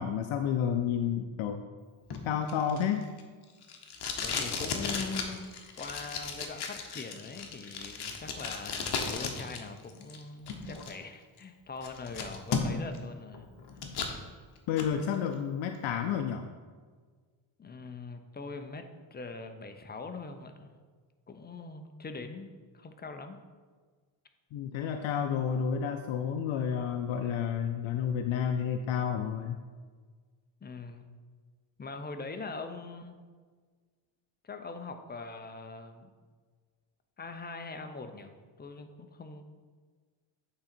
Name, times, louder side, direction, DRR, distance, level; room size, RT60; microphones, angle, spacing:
voice 1, 0.0-1.6 2.2-3.1 14.7-16.5 24.5-29.6, left 8 dB, 70° left, 6 dB, 0.6 m, -30 dB
Packing tape duct tape, 2.1-9.6 9.9-10.9 11.4-11.5 11.8-13.0 13.3-14.1 14.6-14.9, left 5 dB, 50° left, 0.9 m, -35 dB
voice 2, 4.2-5.5 5.8-13.5 17.6-20.7 21.3-23.5 30.6-31.1 31.8-33.2 34.4-36.1 37.2-39.6, left 3 dB, 20° left, 7 dB, 0.5 m, -42 dB
8.7 x 3.8 x 4.3 m, 1.5 s
cardioid pair, 105°, 49 cm